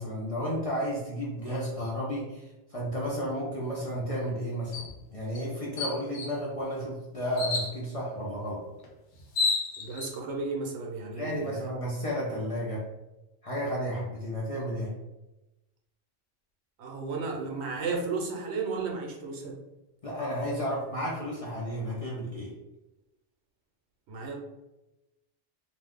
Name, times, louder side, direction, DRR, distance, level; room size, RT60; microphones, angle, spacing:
voice 1, 0.0-8.6 11.1-12.8 13.4-14.9 20.0-22.5, equal, 40° left, -5 dB, 0.5 m, -32 dB
sound 1, 4.7-4.9 5.3-5.4 5.8-6.4 7.4-7.7 8.8-8.9 9.2-10.1, left 3 dB, 85° left, 1.0 m, -29 dB
voice 2, 9.8-11.7 16.8-19.6 24.1-24.4, right 4 dB, 70° right, 0 dB, 0.9 m, -33 dB
2.5 x 2.3 x 3.5 m, 0.99 s
omnidirectional pair, 1.2 m